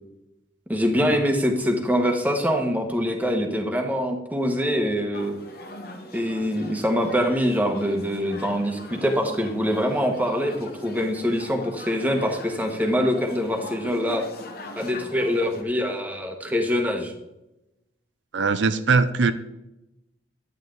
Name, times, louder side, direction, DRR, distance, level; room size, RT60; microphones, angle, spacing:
voice 1, 0.7-5.3 6.1-14.2 14.8-17.1, equal, 10° right, 3 dB, 1.3 m, -24 dB
sound 1, 5.1-15.6, left 1 dB, 55° left, 1.3 m, -41 dB
voice 2, 18.3-19.3, right 4 dB, 80° right, 11 dB, 0.6 m, -20 dB
11.0 x 9.1 x 3.9 m, 0.91 s
head